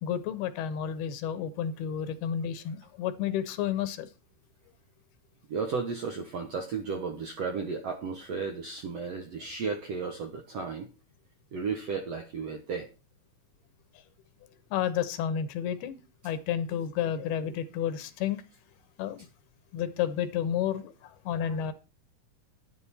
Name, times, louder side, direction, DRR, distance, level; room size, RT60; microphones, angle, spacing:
voice 1, 0.0-4.1 14.7-18.4 19.0-19.3 19.7-21.7, left 9 dB, 80° left, 3.0 m, -31 dB
voice 2, 5.5-10.9 11.5-12.9, right 5 dB, 65° right, 1.6 m, -34 dB
11.0 x 10.5 x 4.3 m
omnidirectional pair, 4.7 m